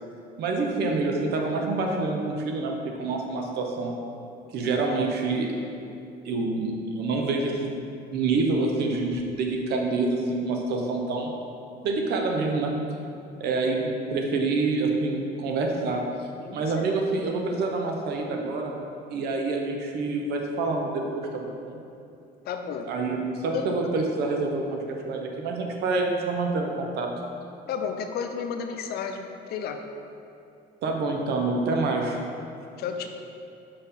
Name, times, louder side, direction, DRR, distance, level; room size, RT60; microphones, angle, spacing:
voice 1, 0.4-2.7 3.0-3.9 4.5-5.5 6.2-7.8 8.1-11.3 11.8-12.7 13.4-16.0 16.5-18.7 19.1-21.8 22.9-27.1 30.8-32.2, right 3 dB, 75° right, 1 dB, 0.9 m, -27 dB
voice 2, 16.4-16.8 22.4-22.9 23.5-24.0 27.7-29.8 32.8-33.1, left 6 dB, 70° left, 6 dB, 0.6 m, -32 dB
5.3 x 4.7 x 5.3 m, 2.7 s
cardioid pair, 110°, 17 cm